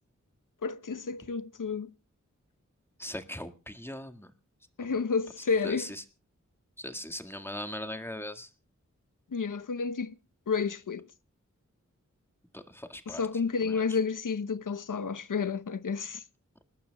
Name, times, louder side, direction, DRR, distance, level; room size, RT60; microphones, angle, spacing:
voice 1, 0.6-1.9 4.8-5.9 9.3-10.1 10.5-11.1 13.1-16.2, left 5 dB, 85° left, 0.9 m, -30 dB
voice 2, 3.0-4.3 4.8-4.9 5.6-6.0 6.8-8.5 12.5-13.2 13.6-14.0, left 1 dB, 5° left, 1.9 m, -40 dB
28.0 x 12.0 x 2.3 m
wide cardioid pair, 75°, 31 cm